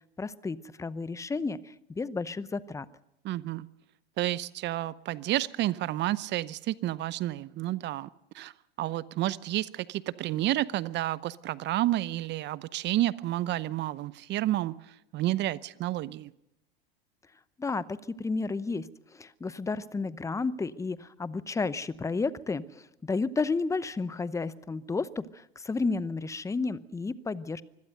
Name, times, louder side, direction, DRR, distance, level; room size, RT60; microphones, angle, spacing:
voice 1, 0.2-2.9 17.6-27.6, left 4 dB, 10° left, 17 dB, 0.8 m, -32 dB
voice 2, 3.2-3.7 4.2-8.1 8.3-8.5 8.8-16.3, right 15 dB, 35° right, 19 dB, 0.7 m, -30 dB
25.0 x 17.0 x 6.6 m, 0.86 s
hypercardioid pair, 95°, 29 cm